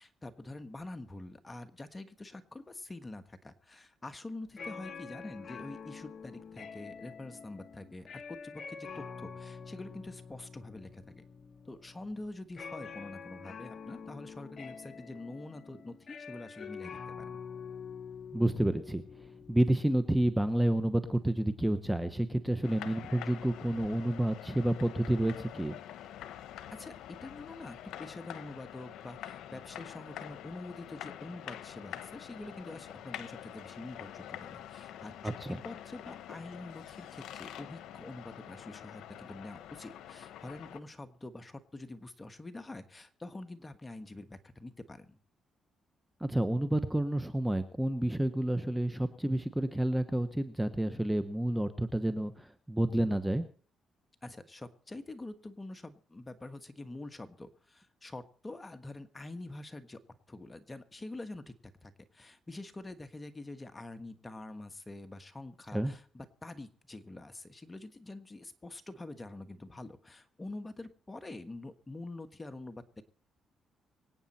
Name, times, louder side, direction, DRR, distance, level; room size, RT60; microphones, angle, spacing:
voice 1, 0.0-11.2 11.6-17.4 26.7-45.2 54.2-60.0 60.3-73.0, left 2 dB, 20° left, 9 dB, 1.4 m, -46 dB
sound 1, 4.5-19.6, left 6 dB, 50° left, 1.1 m, -46 dB
voice 2, 18.3-25.8 35.2-35.6 46.2-53.4 65.7-65.9, right 1 dB, 5° right, 10 dB, 1.1 m, -30 dB
sound 2, 22.6-40.8, left 11 dB, 80° left, 0.9 m, -46 dB
24.5 x 9.0 x 4.3 m, 0.44 s
cardioid pair, 90°, 0 cm